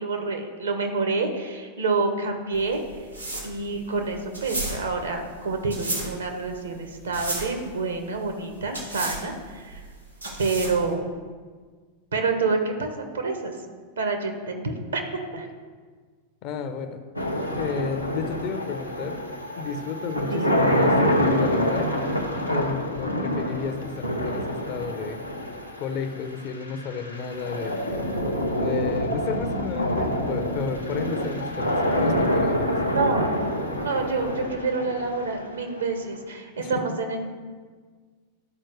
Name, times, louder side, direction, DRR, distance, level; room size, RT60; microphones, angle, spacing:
voice 1, 0.0-2.8 3.4-9.8 10.4-11.1 12.1-13.5 14.0-15.5 20.3-20.6 32.9-33.3 33.8-37.2, right 3 dB, 70° right, 4 dB, 1.0 m, -28 dB
sound 1, 2.5-10.9, right 2 dB, 85° right, 1.3 m, -34 dB
voice 2, 16.4-17.3 17.5-19.2 19.6-22.0 22.5-25.2 25.8-28.0 28.6-32.9 36.5-37.0, left 5 dB, 40° left, 8 dB, 0.6 m, -32 dB
sound 2, 17.2-36.2, equal, 90° left, 0.7 m, -26 dB
12.0 x 4.4 x 3.1 m, 1.5 s
figure-of-eight pair, 90°, 0 cm